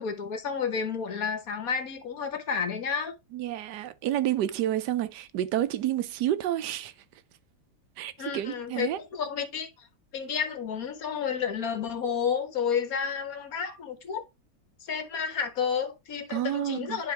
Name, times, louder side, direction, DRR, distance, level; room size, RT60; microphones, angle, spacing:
voice 1, 0.0-3.1 8.2-9.7 10.1-14.2 14.8-17.1, left 6 dB, 60° left, 1.5 m, -31 dB
voice 2, 3.3-6.9 8.0-9.0 16.3-17.0, right 12 dB, 75° right, 1.2 m, -29 dB
10.5 x 3.6 x 3.3 m
omnidirectional pair, 1.9 m